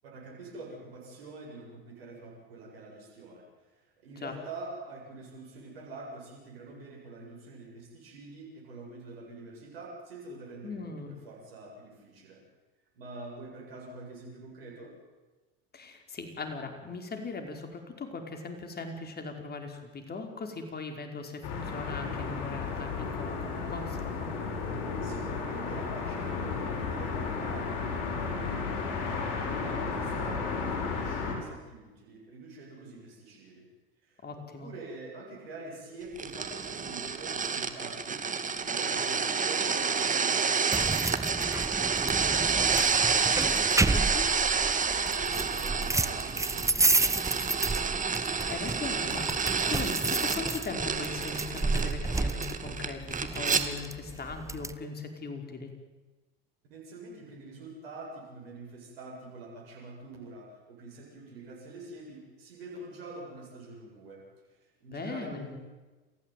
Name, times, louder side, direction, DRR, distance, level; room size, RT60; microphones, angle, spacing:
voice 1, 0.0-12.4 12.9-14.9 25.0-29.0 29.3-33.7 34.0-44.0 44.9-47.6 56.7-64.2 64.8-65.6, right 2 dB, 85° right, -2 dB, 7.8 m, -46 dB
voice 2, 10.6-11.1 15.7-24.3 34.2-34.7 43.9-44.3 48.2-55.7 64.9-65.6, left 4 dB, 35° left, 5 dB, 5.2 m, -39 dB
sound 1, 21.4-31.4, left 5 dB, 70° left, 7.7 m, -33 dB
sound 2, 36.2-53.6, right 5 dB, 25° right, 2.6 m, -29 dB
sound 3, 40.7-54.7, right 3 dB, 10° right, 1.2 m, -31 dB
28.5 x 16.0 x 9.4 m, 1.2 s
hypercardioid pair, 80°, 29 cm